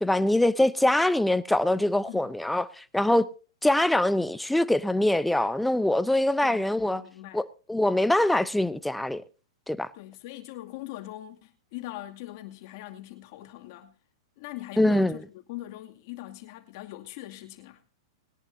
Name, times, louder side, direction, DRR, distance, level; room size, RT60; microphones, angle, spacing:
voice 1, 0.0-3.3 3.6-7.0 7.3-9.2 9.7-9.9 14.8-15.2, left 1 dB, 5° left, 0.6 m, -24 dB
voice 2, 6.4-7.4 9.9-13.9 14.4-15.2 15.5-17.8, left 16 dB, 50° left, 2.4 m, -41 dB
20.5 x 11.0 x 2.7 m
hypercardioid pair, 140°, 2 cm